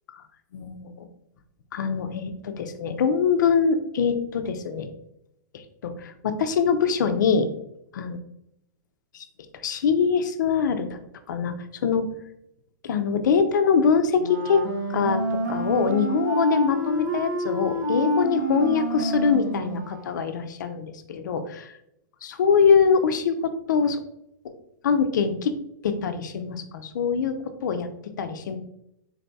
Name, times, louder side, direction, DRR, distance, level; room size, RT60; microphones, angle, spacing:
voice 1, 0.5-1.1 1.7-4.9 5.5-7.5 7.9-8.2 9.1-9.3 9.6-11.0 11.3-11.6 11.8-12.1 12.8-14.6 14.9-21.7 22.4-24.0 24.8-25.5 25.8-27.3 27.6-27.9 28.2-28.6, left 6 dB, 75° left, 9 dB, 0.6 m, -23 dB
Wind instrument woodwind instrument, 14.2-20.4, right 1 dB, 75° right, 1.0 m, -28 dB
4.1 x 2.2 x 4.0 m, 0.80 s
hypercardioid pair, 145°, 10 cm